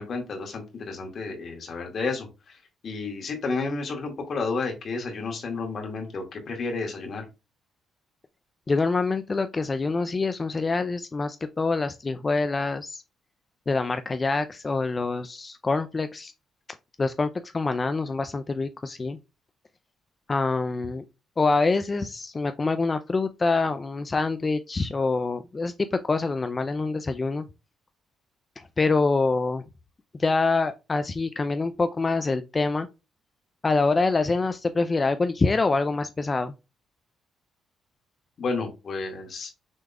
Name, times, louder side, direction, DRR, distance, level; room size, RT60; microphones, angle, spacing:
voice 1, 0.0-7.3 38.4-39.5, left 4 dB, 50° left, 2.0 m, -31 dB
voice 2, 8.7-13.0 13.7-16.3 17.0-19.2 20.3-21.0 21.4-27.4 28.6-29.6 30.1-32.9 33.6-36.5, left 3 dB, 30° left, 0.4 m, -25 dB
6.3 x 3.7 x 2.3 m
cardioid pair, 90°, 0 cm